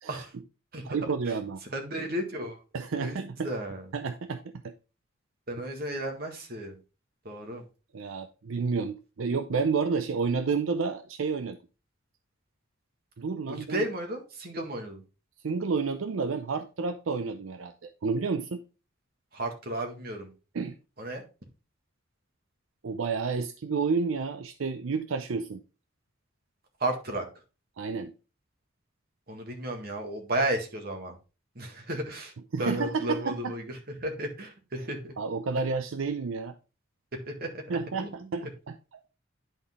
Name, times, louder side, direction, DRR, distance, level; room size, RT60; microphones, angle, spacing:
voice 1, 0.8-1.6 2.7-3.5 3.9-4.7 7.9-11.6 13.2-13.9 15.4-18.6 20.5-20.8 22.8-25.6 27.8-28.1 32.5-33.5 35.2-36.5 37.7-39.0, right 5 dB, 85° right, 10 dB, 0.5 m, -30 dB
voice 2, 1.7-2.6 3.0-3.8 5.5-6.8 7.2-7.6 13.5-15.0 19.3-20.3 21.0-21.2 26.8-27.2 29.3-31.2 31.5-32.3 32.6-35.1 37.3-37.6 38.0-38.1 38.4-38.5, right 1 dB, 50° right, 3 dB, 1.7 m, -33 dB
10.5 x 3.9 x 3.6 m, 0.32 s
head